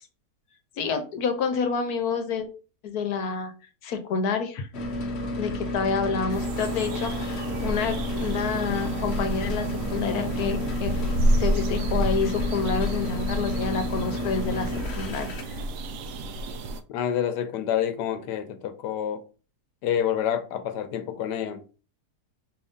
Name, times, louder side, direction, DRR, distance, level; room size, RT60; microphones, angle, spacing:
voice 1, 0.8-2.5 2.8-3.5 3.8-4.7 5.4-15.6, left 5 dB, 70° left, 1.2 m, -28 dB
sound 1, 4.7-15.4, left 1 dB, 50° left, 0.8 m, -31 dB
sound 2, 6.3-16.8, right 1 dB, 70° right, 0.8 m, -30 dB
voice 2, 16.9-19.2 19.8-21.6, left 9 dB, 85° left, 1.3 m, -28 dB
5.2 x 2.6 x 3.5 m
omnidirectional pair, 1.8 m